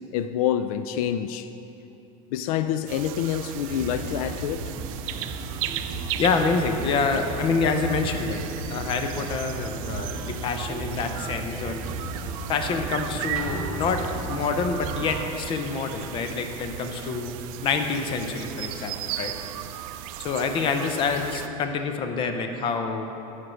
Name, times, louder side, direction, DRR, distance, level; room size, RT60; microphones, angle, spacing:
voice 1, 0.1-1.5 2.3-4.7, left 10 dB, 80° left, 11 dB, 0.4 m, -27 dB
sound 1, 2.9-21.5, right 11 dB, 75° right, 0.4 m, -36 dB
sound 2, 3.7-15.1, right 3 dB, 25° right, 1.2 m, -36 dB
voice 2, 6.2-8.4 8.7-11.8 12.5-19.3 20.2-23.1, left 4 dB, 30° left, 6 dB, 0.6 m, -27 dB
sound 3, 13.4-14.8, left 1 dB, 5° right, 1.4 m, -37 dB
7.8 x 5.8 x 6.3 m, 2.9 s
supercardioid pair, 155°, 18 cm